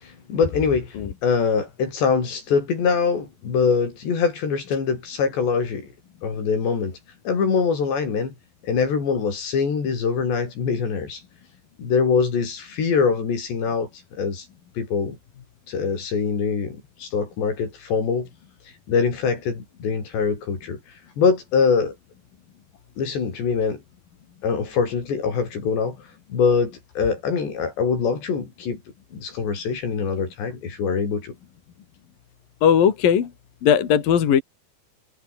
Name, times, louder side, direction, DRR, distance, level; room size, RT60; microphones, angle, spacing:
voice 1, 0.0-1.0 1.2-5.9 6.2-7.0 7.3-8.3 8.6-11.2 11.8-14.5 14.8-15.2 15.7-18.3 18.9-20.8 21.2-22.0 23.0-23.8 24.4-26.0 26.3-28.8 29.1-31.3, left 5 dB, 80° left, 8.1 m, -23 dB
voice 2, 32.6-33.3 33.6-34.4, left 8 dB, 60° left, 4.0 m, -18 dB
omnidirectional pair, 4.9 m